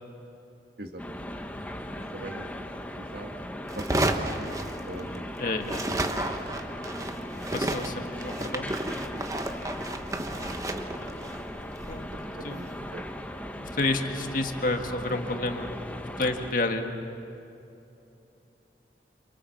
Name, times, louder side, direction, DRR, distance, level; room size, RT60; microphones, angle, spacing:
voice 1, 0.8-1.3 2.1-2.5 2.9-5.3 10.5-10.6 12.5-13.0, right 1 dB, 65° right, 4 dB, 2.0 m, -43 dB
sound 1, 1.0-16.5, left 1 dB, 10° left, 1.1 m, -38 dB
sound 2, 3.7-5.3 5.6-12.8, right 1 dB, 20° right, 1.1 m, -32 dB
voice 2, 5.4-5.8 7.3-8.7 11.9-12.1 12.4-12.7 13.6-15.7 16.2-16.9, left 2 dB, 50° left, 4 dB, 1.9 m, -30 dB
28.0 x 27.5 x 7.3 m, 2.8 s
head